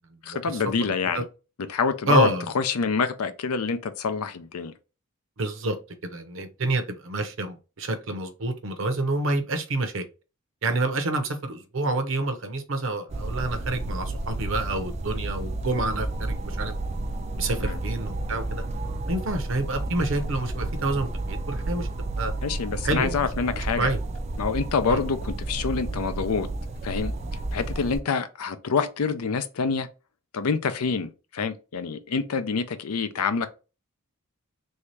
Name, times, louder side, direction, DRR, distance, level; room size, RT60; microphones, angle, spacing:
voice 1, 0.2-1.2 1.7-2.3 2.5-4.7 17.6-17.8 22.4-23.9 24.4-26.5 26.8-27.1 27.5-29.9 30.3-33.5, left 5 dB, 80° left, 0.5 m, -26 dB
voice 2, 2.1-2.5 5.4-5.8 6.0-10.0 10.6-16.7 17.4-18.6 19.1-21.9 22.2-22.3 22.8-23.3 23.5-24.0 24.9-25.0, right 2 dB, 60° right, 0.7 m, -28 dB
sound 1, 13.1-28.0, right 2 dB, 30° right, 0.3 m, -31 dB
3.4 x 2.7 x 3.2 m
head